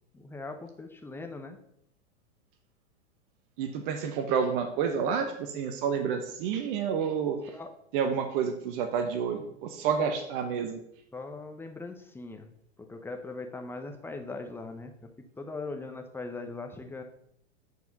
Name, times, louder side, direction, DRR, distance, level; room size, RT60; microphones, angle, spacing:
voice 1, 0.1-1.6 7.5-7.7 11.1-12.5 12.9-14.9 15.4-17.0, left 3 dB, 5° left, 5 dB, 0.9 m, -40 dB
voice 2, 3.6-7.4 7.9-10.8, right 7 dB, 50° right, 6 dB, 1.1 m, -29 dB
8.3 x 4.7 x 5.3 m, 0.73 s
hypercardioid pair, 105°, 34 cm